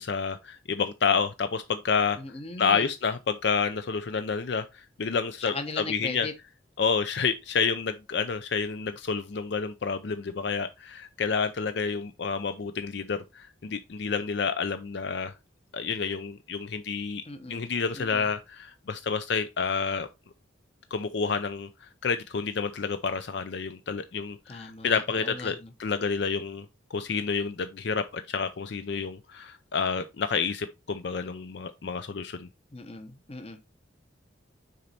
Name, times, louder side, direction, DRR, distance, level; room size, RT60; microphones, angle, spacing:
voice 1, 0.0-2.2 2.6-6.3 6.8-15.3 15.7-20.1 20.9-26.6 26.9-32.5, left 5 dB, 60° left, 0.4 m, -29 dB
voice 2, 2.2-2.9 5.5-6.3 17.2-17.6 17.9-18.3 24.5-25.7 32.7-33.6, left 3 dB, 30° left, 0.9 m, -38 dB
6.5 x 4.0 x 4.2 m
head